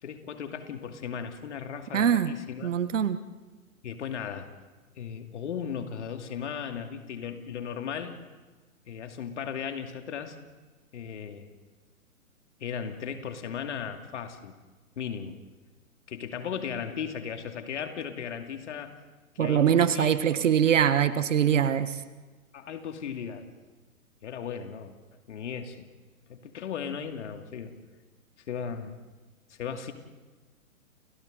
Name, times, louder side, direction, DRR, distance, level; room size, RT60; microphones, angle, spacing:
voice 1, 0.0-2.7 3.8-4.5 5.0-8.2 8.9-10.4 10.9-11.5 12.6-14.5 15.0-15.4 16.1-19.0 19.4-20.5 22.5-23.5 24.2-24.9 25.3-25.9 26.3-27.8 28.5-28.9 29.5-29.9, left 7 dB, 55° left, 6 dB, 2.5 m, -36 dB
voice 2, 1.9-2.3 2.6-3.2 19.4-22.0, right 9 dB, 60° right, 13 dB, 1.4 m, -23 dB
30.0 x 29.5 x 4.0 m, 1.3 s
figure-of-eight pair, 125°, 43 cm